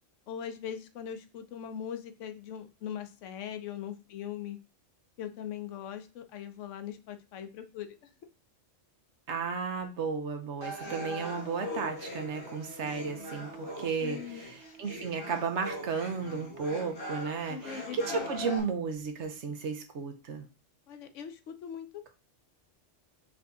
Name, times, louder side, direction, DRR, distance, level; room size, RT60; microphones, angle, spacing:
voice 1, 0.3-4.6 5.2-8.1 14.0-14.5 17.5-18.6 20.9-21.9, left 9 dB, 85° left, 8 dB, 1.0 m, -41 dB
voice 2, 9.3-20.4, right 5 dB, 70° right, 6 dB, 1.1 m, -34 dB
sound 1, 10.6-18.6, equal, 60° left, 1.6 m, -41 dB
4.8 x 2.7 x 3.5 m, 0.32 s
omnidirectional pair, 1.2 m